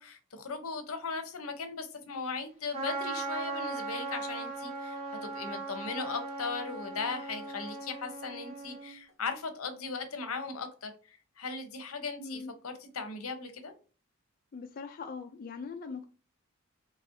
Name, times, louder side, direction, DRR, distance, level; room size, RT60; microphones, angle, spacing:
voice 1, 0.0-13.7, left 4 dB, 85° left, 0.8 m, -38 dB
Trumpet, 2.7-8.9, right 3 dB, 30° right, 1.7 m, -38 dB
voice 2, 12.2-12.5 14.5-16.0, left 4 dB, 45° left, 0.4 m, -41 dB
4.1 x 3.1 x 2.6 m
head